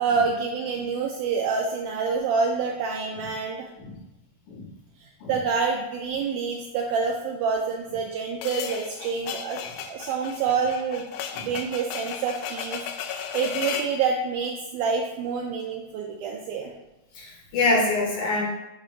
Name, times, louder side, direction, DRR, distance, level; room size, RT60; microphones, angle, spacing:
voice 1, 0.0-3.7 5.0-16.7, right 5 dB, 80° right, 0 dB, 1.8 m, -27 dB
sound 1, 8.4-14.0, left 8 dB, 85° left, 1.8 m, -34 dB
voice 2, 17.2-18.5, left 2 dB, 70° left, -1 dB, 2.2 m, -25 dB
6.8 x 2.9 x 5.0 m, 0.98 s
omnidirectional pair, 4.1 m